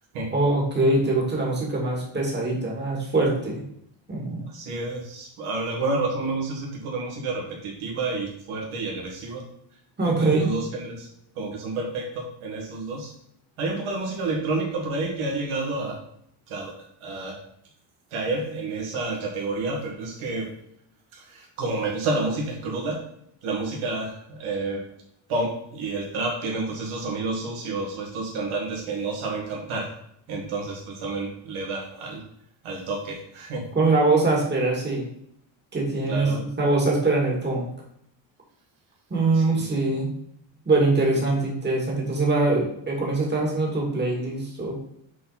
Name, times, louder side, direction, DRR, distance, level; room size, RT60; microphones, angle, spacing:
voice 1, 0.3-3.6 4.1-4.4 10.0-10.5 33.7-35.1 35.7-37.7 39.1-40.1 40.7-44.8, right 2 dB, 20° right, -2 dB, 2.2 m, -23 dB
voice 2, 4.5-9.4 10.0-11.1 11.4-13.1 13.6-16.0 16.5-16.7 17.0-17.4 18.1-20.5 21.1-23.0 23.4-24.8 25.3-29.9 30.3-32.2 32.6-33.6 36.1-36.4 39.3-39.8, right 3 dB, 85° right, -2 dB, 2.1 m, -29 dB
7.4 x 4.2 x 4.2 m, 0.73 s
cardioid pair, 120°, 48 cm